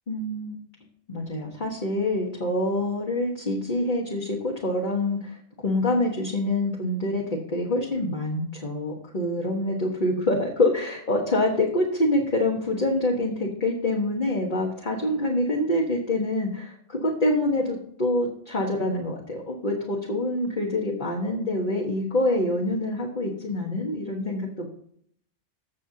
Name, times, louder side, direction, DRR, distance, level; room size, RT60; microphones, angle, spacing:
voice 1, 0.1-0.6 1.1-7.2 7.5-24.7, left 1 dB, 40° left, -2 dB, 1.5 m, -26 dB
15.5 x 6.3 x 2.8 m, 0.64 s
omnidirectional pair, 1.2 m